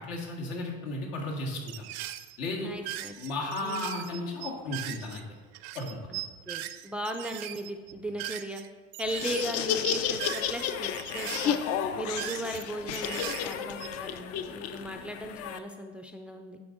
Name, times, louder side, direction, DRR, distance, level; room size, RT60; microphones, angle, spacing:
voice 1, 0.0-1.9 2.4-2.7 3.2-5.2 5.7-6.0, left 2 dB, 80° left, -1 dB, 1.9 m, -34 dB
sound 1, 1.7-2.4 2.7-5.2 5.5-8.7 8.9-9.6 9.8-10.7 10.9-12.6 12.9-14.1, right 14 dB, 75° right, 0.5 m, -39 dB
voice 2, 2.6-3.2 3.6-4.0 6.1-8.6 9.0-11.6 11.9-16.6, right 1 dB, 5° right, 5 dB, 0.3 m, -37 dB
Laughter, 9.0-15.6, left 9 dB, 55° left, 0.5 m, -32 dB
9.6 x 4.2 x 3.8 m, 1.4 s
cardioid pair, 125°, 29 cm